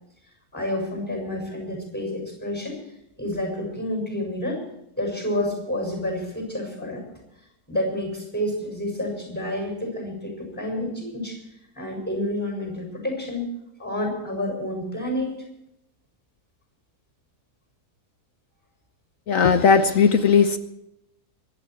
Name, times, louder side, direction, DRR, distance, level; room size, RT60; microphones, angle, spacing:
voice 1, 0.5-2.8 3.2-4.6 5.0-7.0 7.7-11.4 11.7-13.5 13.8-15.3, left 1 dB, 5° left, 1 dB, 6.7 m, -29 dB
voice 2, 19.3-20.6, left 6 dB, 60° left, 10 dB, 1.2 m, -17 dB
25.0 x 11.5 x 4.7 m, 0.83 s
omnidirectional pair, 1.7 m